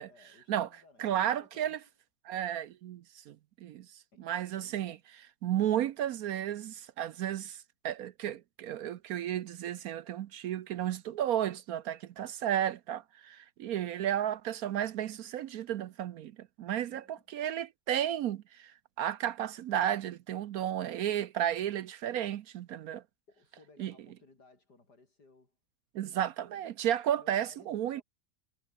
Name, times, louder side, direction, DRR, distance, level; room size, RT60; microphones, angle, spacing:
voice 1, 0.1-1.9 4.1-5.0 16.8-17.3 23.3-25.6 26.4-26.8 27.1-28.0, left 3 dB, 70° left, 5.6 m, -61 dB
voice 2, 1.0-1.8 2.3-3.4 3.6-3.9 4.2-5.0 5.4-7.6 7.8-16.3 16.6-18.7 19.0-23.0 23.8-23.9 25.9-28.0, right 11 dB, 65° right, 1.0 m, -33 dB
omnidirectional pair, 1.8 m